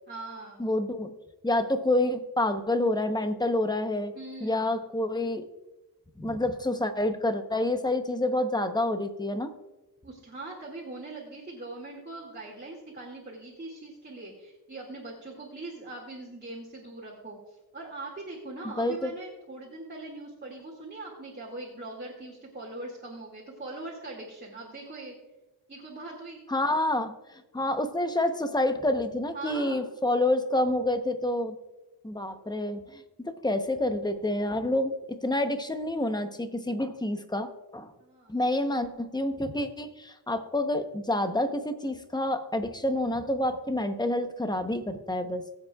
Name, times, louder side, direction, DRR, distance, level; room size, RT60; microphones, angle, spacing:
voice 1, 0.1-0.6 4.1-4.7 10.0-25.2 25.7-26.4 29.3-29.9 38.0-38.7, right 2 dB, 25° right, -3 dB, 2.2 m, -41 dB
voice 2, 0.6-1.1 1.4-4.1 4.4-5.4 6.2-9.5 18.8-19.1 26.5-27.1 27.5-31.6 32.0-37.9 38.3-45.4, left 1 dB, 10° left, 8 dB, 0.8 m, -28 dB
21.5 x 7.9 x 2.4 m, 1.1 s
wide cardioid pair, 110°, 41 cm